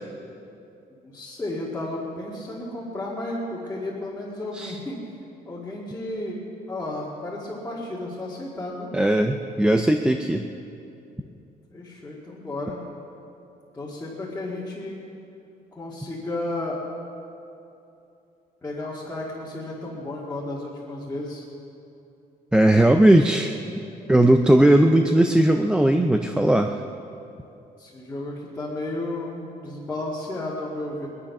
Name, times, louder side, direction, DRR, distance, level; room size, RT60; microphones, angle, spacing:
voice 1, 1.0-5.0 5.5-6.4 6.7-8.9 11.7-12.8 13.7-15.0 15.8-16.8 18.6-21.4 27.8-31.1, left 1 dB, 10° left, -7 dB, 2.0 m, -33 dB
voice 2, 8.9-10.5 22.5-23.5 24.1-26.7, right 1 dB, 5° right, 5 dB, 0.4 m, -18 dB
21.0 x 11.0 x 5.9 m, 2.7 s
cardioid pair, 180°, 17 cm